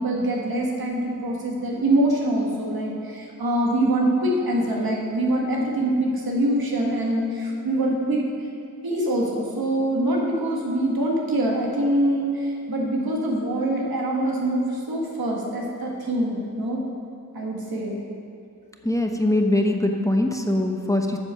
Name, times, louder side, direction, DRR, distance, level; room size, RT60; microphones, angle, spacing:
voice 1, 0.0-8.2 8.8-16.8 17.3-18.0, right 1 dB, 90° right, -2 dB, 1.7 m, -24 dB
voice 2, 18.8-21.2, left 1 dB, 10° left, 3 dB, 0.9 m, -22 dB
8.9 x 7.3 x 6.3 m, 2.5 s
wide cardioid pair, 55°, 35 cm